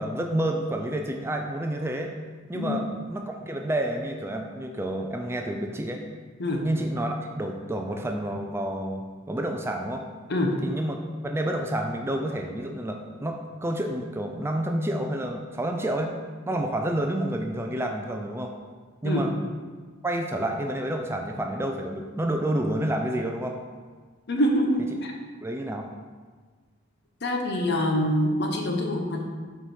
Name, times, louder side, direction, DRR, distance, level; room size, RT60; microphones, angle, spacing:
voice 1, 0.0-2.1 2.5-6.0 6.6-10.0 10.6-16.1 16.5-18.5 19.0-19.3 20.0-23.6 25.4-25.9, right 1 dB, 10° right, 3 dB, 0.4 m, -29 dB
voice 2, 24.3-25.1 27.2-29.3, left 1 dB, 55° left, 2 dB, 0.9 m, -25 dB
6.4 x 4.9 x 4.5 m, 1.5 s
head